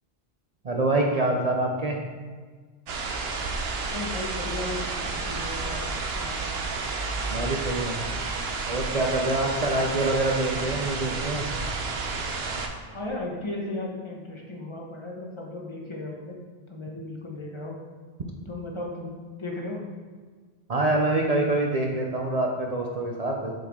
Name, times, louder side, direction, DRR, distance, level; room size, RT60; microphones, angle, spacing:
voice 1, 0.6-2.0 7.3-8.0 8.7-11.4 20.7-23.5, right 2 dB, 45° right, 0 dB, 0.6 m, -25 dB
sound 1, 2.9-12.7, right 3 dB, 70° right, 0.9 m, -31 dB
voice 2, 3.9-6.5 12.9-16.4 16.7-17.8 18.5-19.8, left 2 dB, 30° left, -2 dB, 1.1 m, -36 dB
7.6 x 4.6 x 3.6 m, 1.5 s
omnidirectional pair, 1.1 m